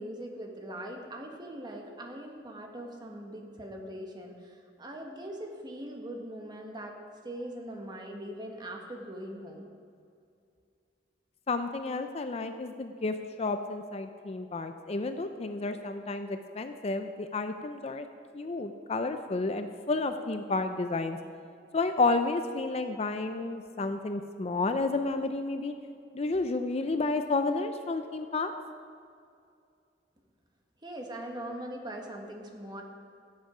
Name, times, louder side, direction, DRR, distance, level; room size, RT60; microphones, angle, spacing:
voice 1, 0.0-7.0 7.2-9.6 30.8-32.8, right 1 dB, 25° right, 1 dB, 1.4 m, -41 dB
voice 2, 11.5-18.1 18.3-21.2 21.7-25.7 26.1-28.5, left 3 dB, 35° left, 8 dB, 0.5 m, -31 dB
15.5 x 8.0 x 5.0 m, 2.4 s
head